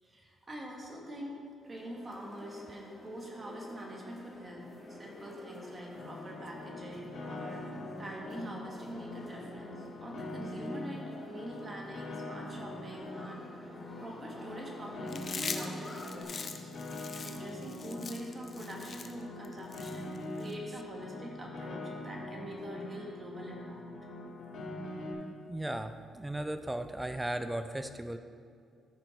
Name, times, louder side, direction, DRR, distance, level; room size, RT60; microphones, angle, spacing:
voice 1, 0.0-7.7 8.0-16.7 17.2-23.9, equal, 25° right, -2 dB, 2.3 m, -44 dB
sound 1, 1.6-16.2, left 1 dB, 20° left, 2.0 m, -51 dB
Piano, 5.9-25.1, left 1 dB, 70° left, 1.8 m, -43 dB
Chewing mastication, 15.1-20.5, left 5 dB, 45° left, 0.7 m, -42 dB
voice 2, 25.5-28.2, right 1 dB, 10° right, 9 dB, 0.5 m, -36 dB
14.0 x 5.2 x 4.6 m, 2.3 s
cardioid pair, 90°, 0 cm